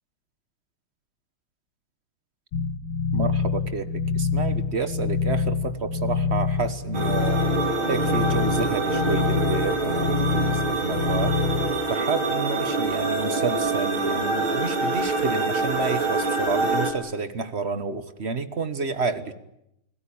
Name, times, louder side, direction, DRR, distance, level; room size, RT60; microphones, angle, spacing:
sound 1, 2.5-11.7, left 5 dB, 85° left, 2.3 m, -26 dB
voice 1, 3.1-7.4 7.9-11.4 11.9-19.3, right 4 dB, 35° right, 11 dB, 1.3 m, -30 dB
sound 2, 6.9-16.9, right 3 dB, 85° right, 3.5 m, -25 dB
28.5 x 18.0 x 8.7 m, 0.83 s
omnidirectional pair, 2.2 m